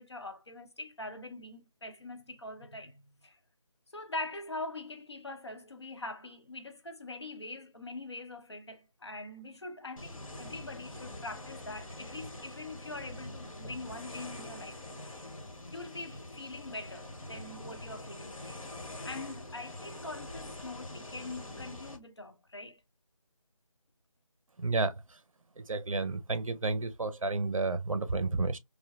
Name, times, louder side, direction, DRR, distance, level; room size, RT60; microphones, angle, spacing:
voice 1, 0.0-3.4 3.9-15.3 15.7-18.7 19.0-22.8, left 2 dB, 50° left, 0.6 m, -43 dB
sound 1, 10.0-22.0, left 1 dB, 70° left, 1.0 m, -44 dB
voice 2, 24.6-25.2 25.6-28.6, right 3 dB, 70° right, 0.6 m, -31 dB
3.1 x 2.5 x 2.2 m
figure-of-eight pair, 175°, 18 cm